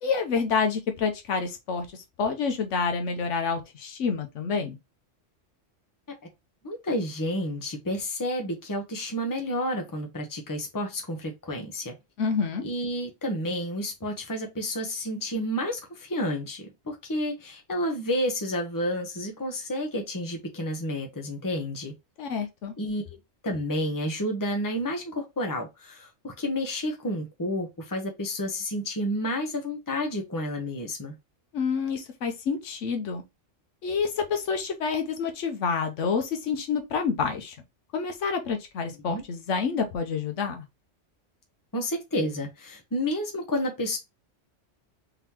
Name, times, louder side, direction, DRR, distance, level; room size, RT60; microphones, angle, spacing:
voice 1, 0.0-4.8 12.2-12.6 22.2-22.7 31.5-33.2 33.8-37.6 37.9-40.6, left 5 dB, 85° left, 1.1 m, -28 dB
voice 2, 6.6-11.9 12.6-21.9 22.8-23.0 23.4-31.1 39.1-39.2 41.7-44.0, equal, 20° left, 1.0 m, -30 dB
3.9 x 3.5 x 2.9 m
omnidirectional pair, 1.2 m